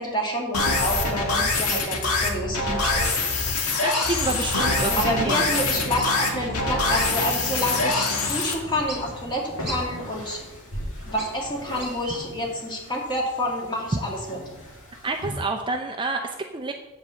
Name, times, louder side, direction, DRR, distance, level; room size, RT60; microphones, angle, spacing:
voice 1, 0.0-3.4 4.9-10.4 11.1-14.4, equal, 20° left, -1 dB, 2.0 m, -28 dB
sound 1, 0.5-8.5, left 3 dB, 75° left, 1.5 m, -24 dB
sound 2, 1.7-1.9 2.8-3.0 3.9-4.1 4.4-4.5 5.0-5.1 6.0-6.1 7.0-7.1 7.6-7.7 8.0-8.1 8.9-9.0 9.7-9.8 10.7-11.4 11.8-12.2, equal, 5° right, 2.7 m, -36 dB
voice 2, 3.8-5.5 15.0-16.7, right 3 dB, 20° right, 3 dB, 0.5 m, -28 dB
sound 3, 7.7-15.3, equal, 60° left, 2.4 m, -39 dB
8.2 x 5.3 x 7.3 m, 1.1 s
head